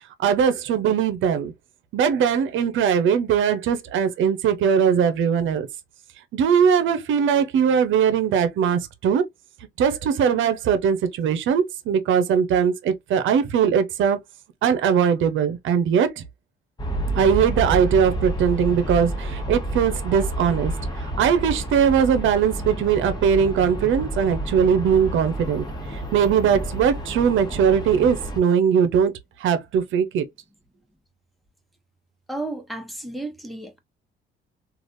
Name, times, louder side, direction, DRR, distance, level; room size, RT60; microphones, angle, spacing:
voice 1, 0.2-1.5 1.9-5.7 6.3-9.2 9.8-14.2 14.6-16.2 17.2-20.7 21.0-25.6 26.1-29.1 29.4-30.2, right 7 dB, 75° right, 0.7 m, -20 dB
Aircraft, 16.8-28.4, right 1 dB, 20° left, 1.1 m, -30 dB
voice 2, 32.3-33.8, right 2 dB, ahead, 1.0 m, -33 dB
3.3 x 2.4 x 2.5 m
cardioid pair, 90°, 20 cm